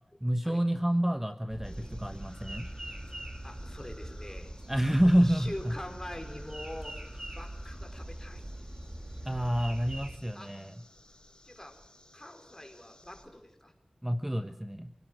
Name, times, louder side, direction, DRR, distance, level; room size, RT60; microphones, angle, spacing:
voice 1, 0.2-2.7 4.7-5.8 9.2-10.7 14.0-14.9, equal, 10° right, 8 dB, 1.1 m, -28 dB
sound 1, 1.5-10.2, right 1 dB, 30° right, 2.5 m, -42 dB
sound 2, 1.6-13.2, left 1 dB, 40° left, 6.3 m, -57 dB
voice 2, 3.4-4.5 5.2-7.0 7.3-8.7 10.3-10.5 11.4-11.8 12.1-13.7, left 1 dB, 20° left, 4 dB, 4.8 m, -44 dB
27.0 x 17.5 x 6.4 m, 0.77 s
wide cardioid pair, 60°, 2 cm